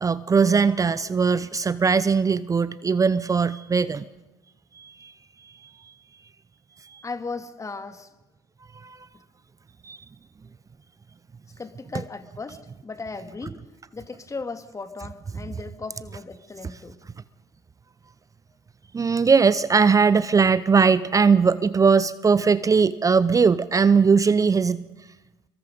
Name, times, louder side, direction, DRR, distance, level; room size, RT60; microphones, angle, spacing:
voice 1, 0.0-4.0 4.7-5.1 5.4-5.9 6.8-7.0 8.7-9.1 9.8-10.0 18.9-24.9, right 5 dB, 25° right, 16 dB, 0.7 m, -20 dB
voice 2, 7.0-8.1 9.1-9.2 11.6-13.6 13.9-17.0, left 4 dB, 25° left, 10 dB, 2.0 m, -36 dB
25.0 x 23.0 x 5.3 m, 1.1 s
hypercardioid pair, 70°, 13 cm